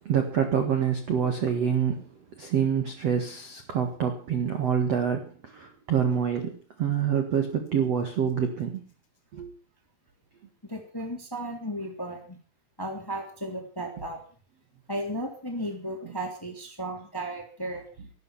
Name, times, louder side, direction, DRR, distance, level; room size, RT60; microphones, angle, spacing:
voice 1, 0.0-2.0 2.4-8.8 9.3-9.5, right 7 dB, 60° right, 6 dB, 1.7 m, -26 dB
voice 2, 10.7-12.4 12.8-14.2 14.9-17.8, right 1 dB, 5° left, 3 dB, 1.8 m, -34 dB
14.0 x 12.5 x 7.2 m, 0.44 s
omnidirectional pair, 5.7 m